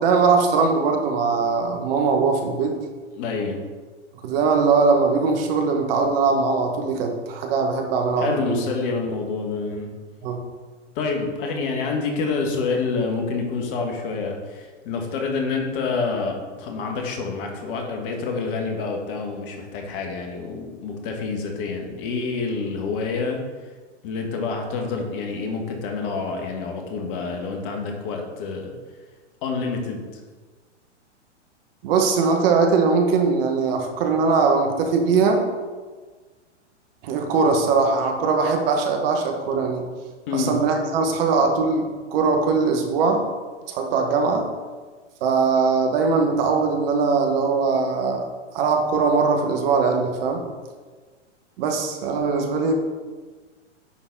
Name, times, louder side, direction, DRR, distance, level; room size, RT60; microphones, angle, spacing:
voice 1, 0.0-2.8 4.2-8.7 10.2-10.4 31.8-35.4 37.0-39.8 40.3-43.2 43.7-44.5 45.2-48.2 48.5-50.4 51.6-52.7, right 4 dB, 50° right, 3 dB, 1.4 m, -21 dB
voice 2, 3.1-3.6 8.2-9.9 10.9-23.4 24.0-28.7 29.4-30.0 40.3-40.6, left 4 dB, 45° left, 2 dB, 1.7 m, -27 dB
9.9 x 4.1 x 4.1 m, 1.4 s
hypercardioid pair, 115°, 36 cm